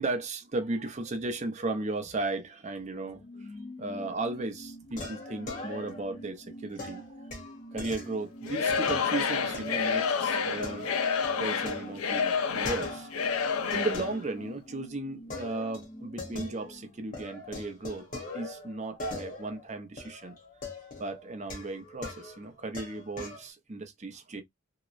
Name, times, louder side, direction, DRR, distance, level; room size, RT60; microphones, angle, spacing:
voice 1, 0.0-3.5 3.8-7.3 7.7-10.9 11.4-13.1 13.7-18.1 18.3-20.4 21.0-24.4, right 2 dB, 35° right, 0.5 m, -35 dB
sound 1, 2.9-17.9 18.2-18.3, equal, 20° left, 0.4 m, -47 dB
sound 2, 4.0-4.4 5.0-6.2 6.8-9.0 9.5-10.0 10.3-13.3 13.7-14.8 15.3-16.9 17.1-23.5, left 2 dB, 40° left, 0.9 m, -42 dB
Singing / Crowd, 8.4-14.1, left 6 dB, 90° left, 0.5 m, -29 dB
2.8 x 2.1 x 2.3 m
head